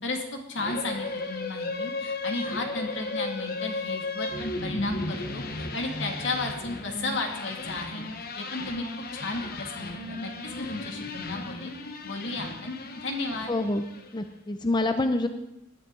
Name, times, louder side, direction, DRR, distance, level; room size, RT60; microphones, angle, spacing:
voice 1, 0.0-8.0 8.4-8.8 9.1-10.3 10.6-11.7 12.0-13.6, left 2 dB, 70° left, 3 dB, 2.3 m, -34 dB
sound 1, 0.6-14.2, left 2 dB, 50° left, 1.1 m, -35 dB
voice 2, 13.5-13.8 14.1-15.3, left 2 dB, 25° left, 7 dB, 0.6 m, -26 dB
19.0 x 11.5 x 3.8 m, 0.88 s
head